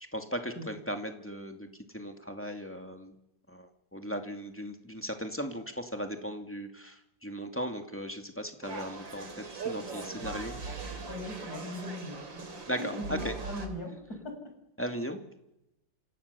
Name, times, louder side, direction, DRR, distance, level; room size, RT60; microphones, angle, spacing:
voice 1, 0.1-1.7 1.9-3.1 3.5-10.8 12.7-13.3 14.8-15.2, equal, 5° left, 5 dB, 2.3 m, -37 dB
sound 1, 8.6-13.7, right 4 dB, 90° right, 4.0 m, -40 dB
voice 2, 11.0-12.7 12.9-14.5, left 1 dB, 55° left, 4 dB, 6.5 m, -40 dB
28.5 x 27.0 x 7.0 m, 0.87 s
omnidirectional pair, 2.0 m